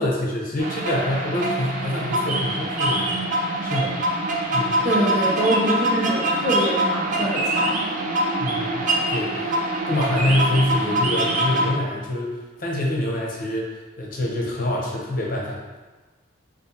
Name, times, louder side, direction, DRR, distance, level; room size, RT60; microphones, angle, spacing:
voice 1, 0.0-3.3 3.6-4.0 4.5-4.9 8.4-9.5 9.9-15.8, left 1 dB, 40° left, -2 dB, 0.6 m, -26 dB
sound 1, 0.6-11.7, right 1 dB, 40° right, 0.4 m, -24 dB
voice 2, 4.8-7.8, right 1 dB, 90° right, -6 dB, 1.0 m, -24 dB
2.7 x 2.5 x 3.7 m, 1.2 s
head